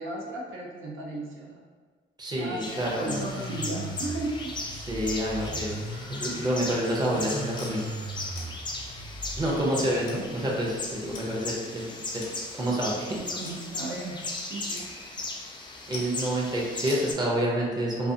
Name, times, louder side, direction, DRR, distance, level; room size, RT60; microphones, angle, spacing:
voice 1, 0.0-1.6 2.4-4.5 10.3-10.5 13.2-14.2 14.5-14.9, right 2 dB, 80° right, -2 dB, 0.6 m, -35 dB
voice 2, 2.2-3.2 4.8-5.8 6.1-7.9 9.4-11.9 12.1-12.3 12.5-13.1 15.9-18.1, right 1 dB, 20° right, -3 dB, 0.6 m, -28 dB
sound 1, 2.6-17.1, left 2 dB, 25° left, 0.4 m, -37 dB
sound 2, 3.1-11.4, right 1 dB, 40° right, 1.1 m, -39 dB
sound 3, 7.6-7.8 8.4-8.6 9.4-9.5 10.1-10.2 11.1-11.3 11.6-11.7 12.2-12.4 12.8-12.9 13.4-13.9 14.8-14.9 15.2-15.5 15.9-16.3 16.9-17.1, left 2 dB, 75° left, 0.6 m, -42 dB
2.4 x 2.3 x 2.7 m, 1.5 s
cardioid pair, 90°, 20 cm